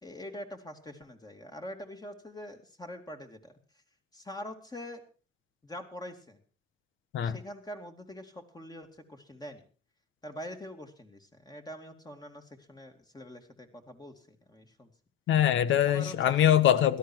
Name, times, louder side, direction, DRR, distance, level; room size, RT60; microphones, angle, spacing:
voice 1, 0.0-3.6 4.1-5.0 5.6-6.4 7.2-9.6 10.2-14.9 15.8-16.5, left 1 dB, 20° left, 2.6 m, -44 dB
voice 2, 15.3-17.0, left 10 dB, 75° left, 1.1 m, -23 dB
17.0 x 13.0 x 4.6 m
cardioid pair, 90°, 20 cm